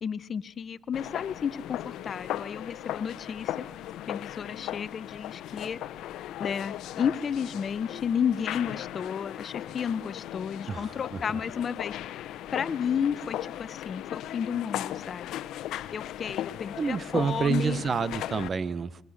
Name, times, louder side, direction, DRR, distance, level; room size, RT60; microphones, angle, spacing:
voice 1, 0.0-3.6 4.1-5.8 6.4-12.0 12.5-15.4 15.9-17.8, left 7 dB, 50° left, 18 dB, 0.8 m, -32 dB
sound 1, 0.9-18.5, left 12 dB, 85° left, 0.8 m, -37 dB
voice 2, 10.7-11.4 16.7-19.0, right 5 dB, 45° right, 20 dB, 0.8 m, -29 dB
26.5 x 21.5 x 6.4 m, 0.87 s
cardioid pair, 90°, 0 cm